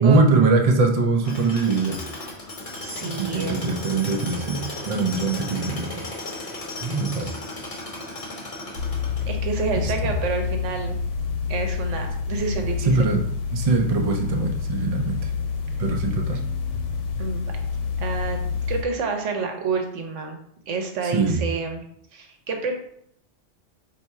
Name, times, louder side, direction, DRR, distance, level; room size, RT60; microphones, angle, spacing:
voice 1, 0.0-2.0 3.0-6.0 6.8-7.3 9.8-10.1 12.9-13.2 13.5-15.3 15.8-16.4 21.1-21.4, right 3 dB, 40° right, 3 dB, 0.6 m, -22 dB
Tools, 1.2-9.5, left 2 dB, 30° left, 1.0 m, -35 dB
voice 2, 2.8-3.6 9.2-11.0 11.5-12.9 17.2-17.5 18.0-18.4 18.7-20.4 20.7-21.8 22.1-22.7, right 4 dB, 90° right, 3 dB, 1.1 m, -28 dB
sound 1, 8.8-18.8, left 6 dB, 80° left, 1.0 m, -28 dB
4.2 x 2.8 x 4.6 m, 0.71 s
omnidirectional pair, 1.2 m